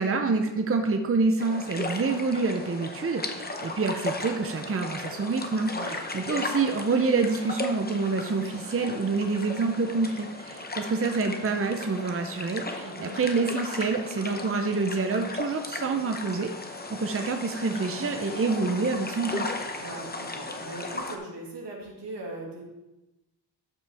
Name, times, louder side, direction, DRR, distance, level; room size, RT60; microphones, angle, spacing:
voice 1, 0.0-5.7 6.1-16.5 16.9-19.5, right 4 dB, 35° right, 6 dB, 0.6 m, -27 dB
sound 1, 1.4-21.2, left 2 dB, 20° left, 0.8 m, -36 dB
voice 2, 5.7-6.0 12.8-13.2 19.8-22.6, right 2 dB, 75° right, -2 dB, 2.3 m, -39 dB
12.5 x 5.6 x 3.5 m, 1.0 s
wide cardioid pair, 105°, 42 cm